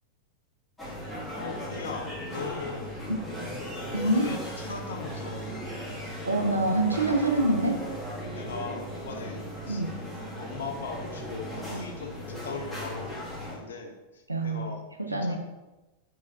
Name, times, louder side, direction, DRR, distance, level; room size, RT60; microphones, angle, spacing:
sound 1, 0.8-13.6, equal, 10° left, 1.4 m, -37 dB
voice 1, 1.4-3.0 3.9-5.5 8.3-9.8 10.4-13.2 13.5-15.4, left 5 dB, 65° left, 4 dB, 0.5 m, -39 dB
voice 2, 3.9-4.3 6.2-7.8 9.7-9.9 14.3-14.7 15.1-15.4, right 2 dB, 85° right, 3 dB, 0.4 m, -25 dB
3.6 x 3.0 x 2.9 m, 1.1 s
figure-of-eight pair, 90°, 0 cm